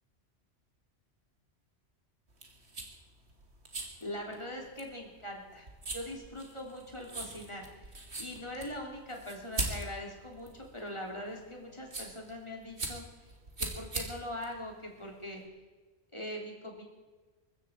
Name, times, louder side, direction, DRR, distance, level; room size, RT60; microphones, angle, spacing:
sound 1, 2.3-15.4, right 2 dB, 80° right, 2.5 m, -42 dB
voice 1, 4.0-5.7 5.9-13.0 13.6-15.4 16.1-16.8, left 1 dB, 25° left, 0 dB, 3.4 m, -42 dB
23.0 x 13.5 x 4.6 m, 1.3 s
omnidirectional pair, 1.1 m